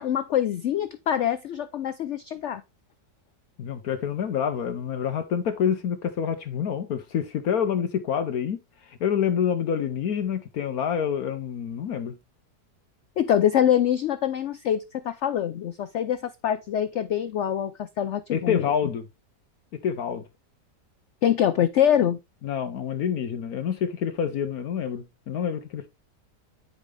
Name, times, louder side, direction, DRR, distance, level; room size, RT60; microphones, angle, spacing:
voice 1, 0.0-2.6 13.2-18.6 21.2-22.2, left 10 dB, 85° left, 0.6 m, -24 dB
voice 2, 3.6-12.2 18.3-19.1 19.8-20.2 22.4-25.9, left 8 dB, 65° left, 1.2 m, -27 dB
9.6 x 5.2 x 3.3 m
omnidirectional pair, 1.8 m